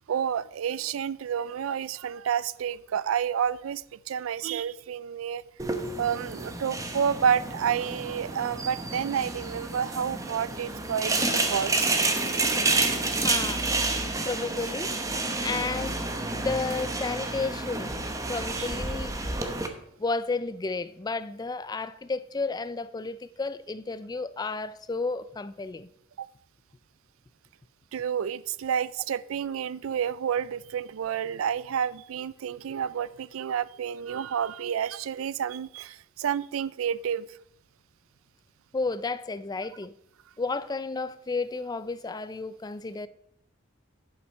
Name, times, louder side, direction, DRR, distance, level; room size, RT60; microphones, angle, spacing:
voice 1, 0.1-5.4 6.0-11.9 18.6-18.7 26.2-26.3 27.9-37.3, right 8 dB, 85° right, 0.4 m, -30 dB
sound 1, 5.6-19.7, right 3 dB, 15° right, 0.9 m, -29 dB
voice 2, 13.2-13.7 14.3-15.0 15.4-16.0 16.3-17.9 18.3-19.2 20.0-25.9 38.7-39.9 40.4-43.1, left 3 dB, 20° left, 0.3 m, -32 dB
11.0 x 5.8 x 5.4 m
head